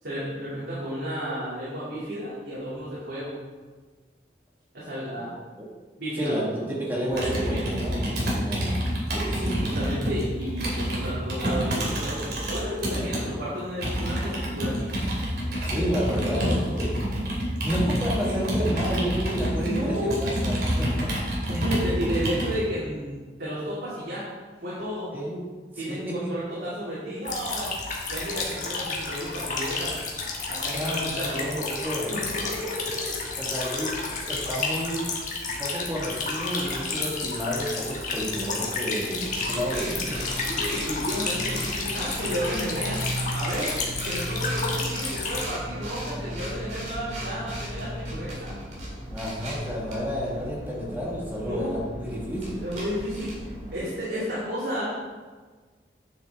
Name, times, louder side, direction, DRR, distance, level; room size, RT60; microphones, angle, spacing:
voice 1, 0.0-3.4 4.7-5.3 6.0-6.6 7.1-8.1 9.6-15.0 16.1-16.6 19.6-20.2 21.5-24.2 24.6-25.1 25.8-27.7 28.1-30.0 30.5-31.7 32.1-32.2 32.8-32.9 40.4-43.0 43.3-43.8 44.0-48.5 51.4-51.7 52.6-53.4 53.7-54.8, equal, 80° right, -10 dB, 2.7 m, -32 dB
voice 2, 6.1-8.8 9.1-9.6 15.6-16.9 17.6-21.1 25.1-25.4 25.7-26.3 30.7-32.1 33.4-35.1 35.5-40.3 49.1-52.6, equal, 10° right, -4 dB, 1.7 m, -30 dB
Computer keyboard, 7.1-13.2 13.8-22.6, equal, 65° right, 2.4 m, -28 dB
sound 1, 27.2-45.5, left 3 dB, 45° left, 1.4 m, -31 dB
sound 2, 39.3-53.8, equal, 40° right, 2.1 m, -35 dB
9.1 x 6.8 x 3.6 m, 1.4 s
head